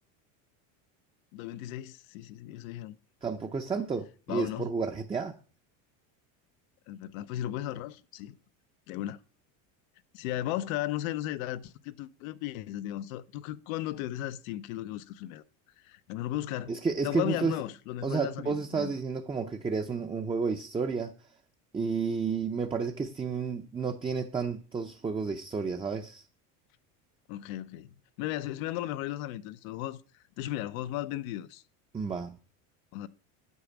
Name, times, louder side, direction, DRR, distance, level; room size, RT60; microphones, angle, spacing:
voice 1, 1.3-3.0 4.3-4.7 6.9-8.3 8.9-9.2 10.1-15.4 15.8-16.7 17.0-18.9 27.3-30.0 30.4-31.6 32.9-33.1, left 14 dB, 80° left, 0.8 m, -35 dB
voice 2, 3.2-5.4 16.7-17.6 18.0-21.1 21.7-26.2 31.9-32.4, right 5 dB, 15° right, 0.6 m, -31 dB
8.4 x 4.9 x 7.1 m
supercardioid pair, 120°, 41 cm